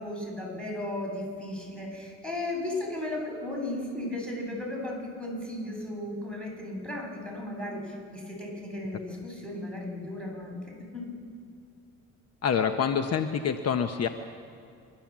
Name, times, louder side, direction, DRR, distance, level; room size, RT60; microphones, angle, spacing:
voice 1, 0.0-10.6 10.9-11.1, left 1 dB, 5° left, -1 dB, 7.1 m, -35 dB
voice 2, 12.4-14.1, left 7 dB, 55° left, 7 dB, 1.0 m, -26 dB
28.5 x 12.5 x 7.5 m, 2.4 s
cardioid pair, 90°, 30 cm